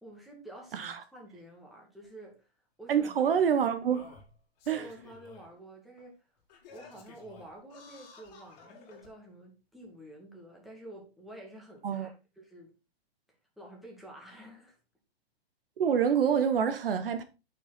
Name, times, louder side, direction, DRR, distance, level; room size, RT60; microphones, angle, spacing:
voice 1, 0.0-2.5 2.8-3.3 4.6-6.2 6.7-12.7 13.6-14.8, right 1 dB, ahead, 2.3 m, -49 dB
voice 2, 0.7-1.0 2.9-4.1 4.7-4.8 11.8-12.1 15.8-17.2, right 7 dB, 60° right, 1.2 m, -27 dB
Singing, 2.0-2.1 3.2-3.3 3.9-5.5 6.0-6.1 6.5-9.1 9.9-10.0, left 5 dB, 40° left, 2.8 m, -53 dB
8.9 x 5.9 x 4.2 m
hypercardioid pair, 140°, 32 cm